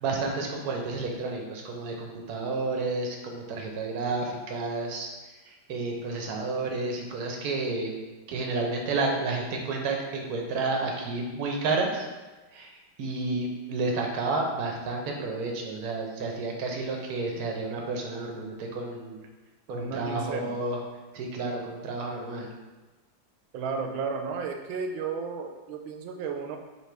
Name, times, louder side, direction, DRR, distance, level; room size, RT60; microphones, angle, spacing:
voice 1, 0.0-5.1 5.4-7.9 8.3-12.1 12.5-12.7 13.0-19.3 19.7-20.8 21.1-22.5, right 3 dB, 65° right, 1 dB, 1.0 m, -31 dB
voice 2, 19.7-20.6 23.5-26.6, right 5 dB, 85° right, 4 dB, 1.4 m, -33 dB
5.3 x 2.9 x 3.3 m, 1.2 s
omnidirectional pair, 2.1 m